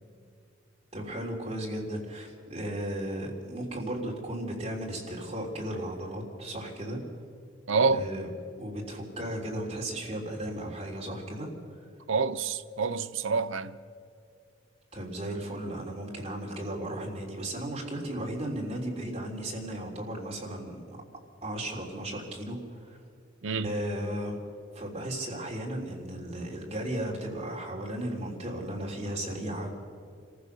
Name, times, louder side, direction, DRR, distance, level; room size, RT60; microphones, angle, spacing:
voice 1, 0.9-7.0 7.9-8.3 8.6-11.5 14.9-21.0 21.4-23.0 23.6-24.4 24.8-29.7, right 1 dB, 30° right, 3.4 m, -35 dB
voice 2, 7.7-8.1 12.1-13.8 23.4-23.7, right 4 dB, 70° right, 0.7 m, -27 dB
25.5 x 15.0 x 6.8 m
head